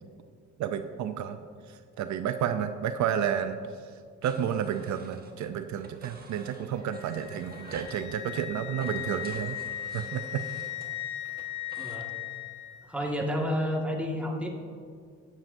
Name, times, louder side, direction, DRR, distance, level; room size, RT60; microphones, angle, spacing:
voice 1, 0.6-1.4 1.7-3.6 4.2-9.6 9.9-10.4, right 9 dB, 70° right, 8 dB, 0.5 m, -31 dB
sound 1, 4.2-5.5 5.8-8.0 8.7-12.0, right 3 dB, 30° right, 1.3 m, -49 dB
Wind instrument woodwind instrument, 6.9-12.9, left 13 dB, 70° left, 0.7 m, -38 dB
voice 2, 11.8-12.1 12.9-14.5, equal, 5° right, 0 dB, 1.7 m, -30 dB
17.0 x 7.4 x 2.6 m, 2.1 s
cardioid pair, 90°, 30 cm